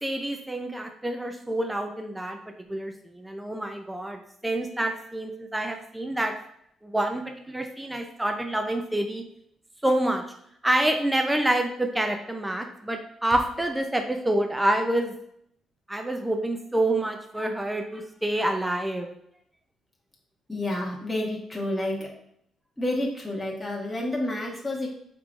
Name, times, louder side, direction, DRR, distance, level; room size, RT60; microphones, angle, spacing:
voice 1, 0.0-2.4 2.7-6.3 6.8-9.2 9.8-10.2 10.6-15.2 15.9-19.1, right 1 dB, 10° right, 4 dB, 0.4 m, -27 dB
voice 2, 20.5-22.1 22.8-24.9, left 1 dB, 10° left, -3 dB, 1.2 m, -29 dB
4.7 x 3.7 x 2.4 m, 0.72 s
cardioid pair, 90°, 0 cm